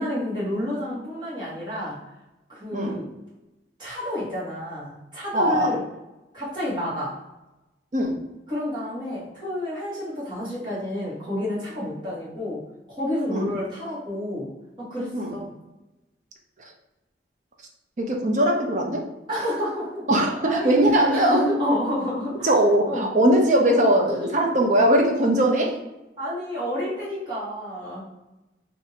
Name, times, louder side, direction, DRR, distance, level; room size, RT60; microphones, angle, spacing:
voice 1, 0.0-2.0 2.5-3.1 3.8-5.8 6.3-7.2 8.5-12.6 12.9-14.5 14.8-15.5 19.3-20.1 20.4-20.8 21.1-22.5 22.9-23.1 26.2-28.0, left 1 dB, 25° right, -9 dB, 1.5 m, -29 dB
voice 2, 5.3-5.8 7.9-8.3 13.3-13.5 15.1-15.3 18.0-19.1 20.1-21.6 22.4-25.8, right 1 dB, 40° right, 1 dB, 0.5 m, -20 dB
2.7 x 2.7 x 4.0 m, 1.0 s
head